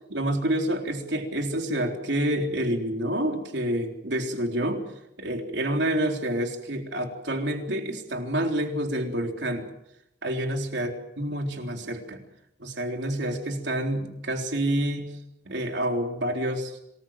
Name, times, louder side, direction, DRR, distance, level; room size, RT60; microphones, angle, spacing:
voice 1, 0.1-4.8 5.2-9.7 10.2-12.2 12.6-15.1 15.5-16.8, right 1 dB, 70° right, 3 dB, 3.9 m, -28 dB
27.0 x 20.5 x 7.5 m, 0.82 s
head